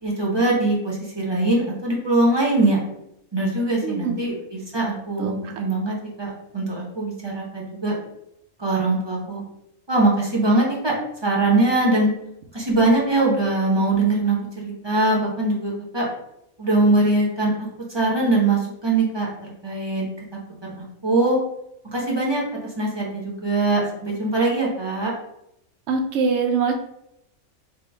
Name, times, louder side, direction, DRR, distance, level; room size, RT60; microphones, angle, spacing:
voice 1, 0.0-2.8 3.3-7.9 8.6-9.4 9.9-10.9 11.2-12.1 12.5-16.1 16.6-17.5 17.9-19.3 19.6-20.1 20.6-21.4 21.9-22.4 22.8-25.1, right 2 dB, 30° right, -3 dB, 0.5 m, -22 dB
voice 2, 3.8-4.2 5.2-5.3 25.9-26.7, right 5 dB, 65° right, 4 dB, 0.8 m, -23 dB
3.6 x 2.1 x 4.3 m, 0.80 s
omnidirectional pair, 1.5 m